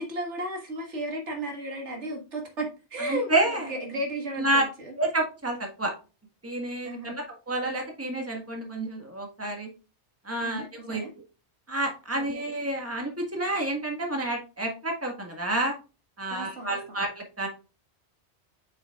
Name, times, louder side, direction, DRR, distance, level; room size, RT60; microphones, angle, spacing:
voice 1, 0.0-5.0 6.8-7.1 10.4-11.1 12.1-12.4 16.3-17.0, right 1 dB, 85° right, 2 dB, 1.9 m, -34 dB
voice 2, 3.1-3.7 4.4-4.6 5.0-5.9 6.4-9.7 10.2-11.0 11.7-15.7 16.2-17.5, right 1 dB, 15° right, 2 dB, 1.4 m, -29 dB
7.1 x 5.8 x 2.3 m, 0.31 s
omnidirectional pair, 1.2 m